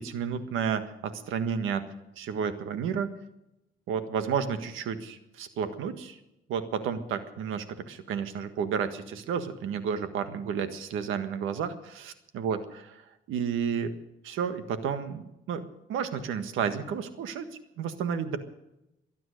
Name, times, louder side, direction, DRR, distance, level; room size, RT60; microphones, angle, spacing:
voice 1, 0.0-1.8 2.2-3.1 3.9-6.2 6.5-12.8 13.3-13.9 14.2-15.6 15.9-17.5 17.8-18.4, right 7 dB, 85° right, 10 dB, 1.6 m, -31 dB
23.5 x 9.4 x 6.5 m, 0.88 s
cardioid pair, 90°, 20 cm